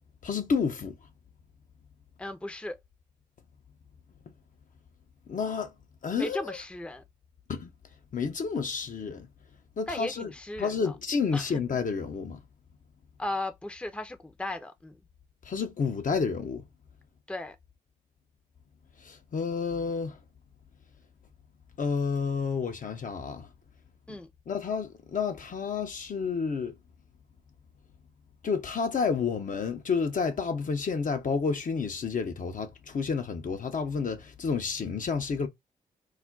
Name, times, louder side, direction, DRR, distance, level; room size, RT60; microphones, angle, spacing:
voice 1, 0.2-0.9 5.3-5.7 6.0-6.6 7.5-7.7 8.1-9.3 9.8-10.3 10.6-12.4 15.5-16.6 19.0-20.2 21.8-23.5 24.5-26.8 28.4-35.5, left 5 dB, 50° left, 0.7 m, -30 dB
voice 2, 2.2-2.8 6.2-7.0 9.9-10.9 11.3-11.5 13.2-15.0 17.3-17.6 24.1-24.3, left 1 dB, 5° left, 0.6 m, -36 dB
2.4 x 2.1 x 3.8 m
hypercardioid pair, 40°, 18 cm